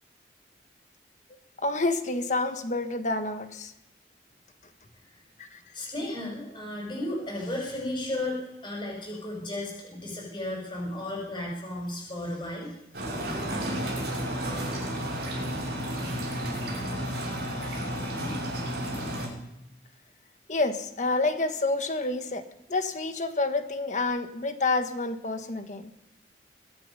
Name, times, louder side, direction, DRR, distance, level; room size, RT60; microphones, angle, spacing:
voice 1, 1.6-3.7 5.4-5.6 20.5-22.4 22.7-25.9, left 2 dB, 45° left, 8 dB, 1.3 m, -28 dB
voice 2, 5.7-12.8, left 1 dB, 25° left, -3 dB, 5.7 m, -34 dB
sound 1, 12.9-19.3, equal, 75° right, 6.0 m, -32 dB
23.0 x 8.8 x 5.6 m, 0.87 s
head